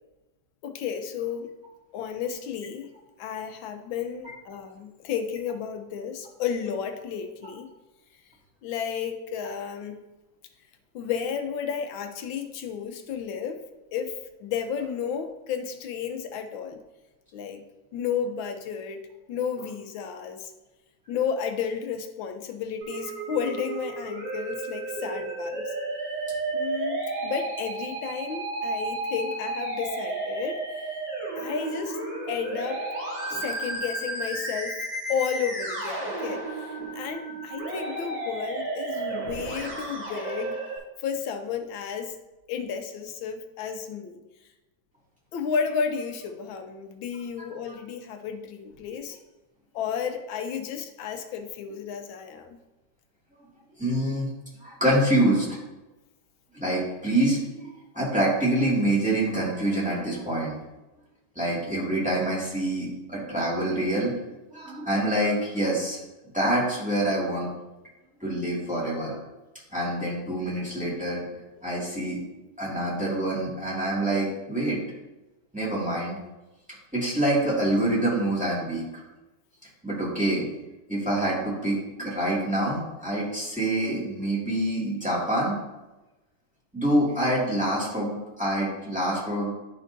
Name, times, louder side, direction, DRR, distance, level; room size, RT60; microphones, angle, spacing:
voice 1, 0.6-1.5 1.9-2.9 3.2-7.7 8.6-10.0 10.9-13.6 13.9-16.8 17.3-17.6 17.9-19.0 19.3-20.5 21.1-25.8 26.5-31.0 31.4-32.0 32.3-32.8 33.3-34.8 35.1-40.6 41.0-42.2 42.5-44.2 45.3-49.2 49.7-52.6, left 7 dB, 85° left, 6 dB, 1.5 m, -32 dB
Musical instrument, 22.8-40.8, right 2 dB, 80° right, 2.8 m, -33 dB
voice 2, 53.8-54.3 54.6-55.5 56.5-60.5 61.4-64.1 64.5-66.0 66.3-67.5 68.2-69.2 69.7-71.2 71.6-72.2 72.6-74.9 75.5-76.2 76.9-78.8 79.8-80.4 80.9-85.6 86.7-89.5, right 1 dB, 5° right, -7 dB, 2.0 m, -26 dB
10.5 x 5.4 x 2.6 m, 1.0 s
omnidirectional pair, 2.1 m